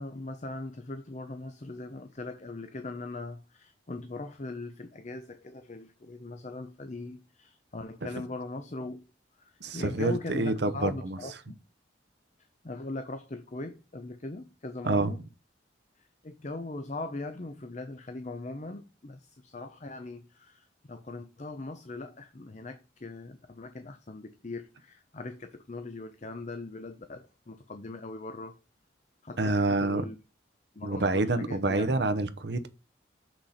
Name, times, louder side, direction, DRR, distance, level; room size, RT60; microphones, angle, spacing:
voice 1, 0.0-9.0 9.4-11.6 12.6-15.2 16.0-28.6 29.2-30.2 30.7-32.0, left 2 dB, 40° left, 0.7 m, -40 dB
voice 2, 9.6-11.2 14.8-15.1 29.4-30.0 30.8-32.7, right 2 dB, 60° right, 0.8 m, -27 dB
6.7 x 6.1 x 4.3 m
head